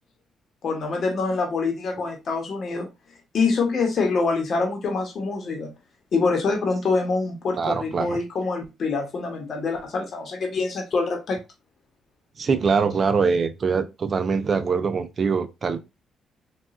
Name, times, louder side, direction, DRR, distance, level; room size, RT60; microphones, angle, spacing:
voice 1, 0.6-2.9 3.3-5.7 6.1-11.4, left 4 dB, 55° left, 0.9 m, -25 dB
voice 2, 7.6-8.2 12.4-15.8, right 5 dB, 45° right, 0.4 m, -23 dB
4.0 x 2.3 x 2.3 m
cardioid pair, 90°, 0 cm